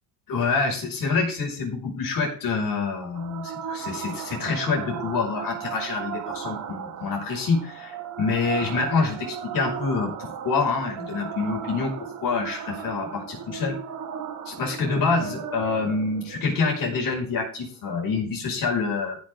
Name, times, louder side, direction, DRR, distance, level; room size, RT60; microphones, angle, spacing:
voice 1, 0.3-11.9 12.2-13.8 14.5-19.2, left 4 dB, 65° left, 0 dB, 5.4 m, -26 dB
sound 1, 3.1-18.1, right 8 dB, 65° right, 2.0 m, -36 dB
15.0 x 6.7 x 3.6 m, 0.40 s
cardioid pair, 100°, 36 cm